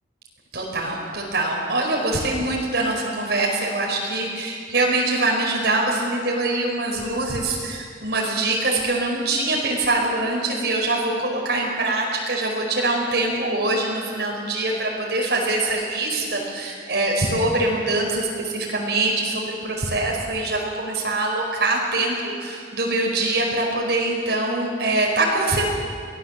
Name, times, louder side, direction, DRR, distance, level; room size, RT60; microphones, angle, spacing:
voice 1, 0.5-25.7, right 2 dB, 70° right, -2 dB, 5.0 m, -23 dB
24.5 x 18.0 x 7.4 m, 2.1 s
head